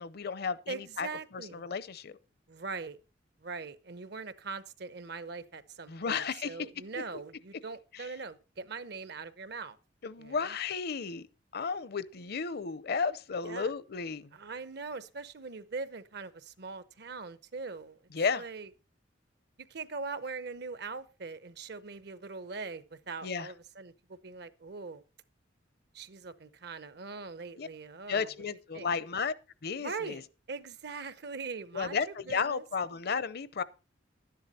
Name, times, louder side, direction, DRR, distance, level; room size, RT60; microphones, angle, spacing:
voice 1, 0.0-1.1 1.3-2.2 5.9-6.6 7.9-8.1 10.0-11.3 11.5-14.3 18.1-18.4 23.2-23.5 27.6-27.7 28.1-29.3 29.6-30.2 31.7-33.6, left 5 dB, 55° left, 0.6 m, -33 dB
voice 2, 0.7-1.6 2.5-3.0 3.4-9.8 10.2-10.6 13.4-13.7 14.3-18.0 18.3-18.7 19.7-25.0 25.9-28.3 28.7-28.9 29.8-32.6, right 4 dB, 60° right, 0.8 m, -41 dB
12.0 x 10.5 x 4.2 m
head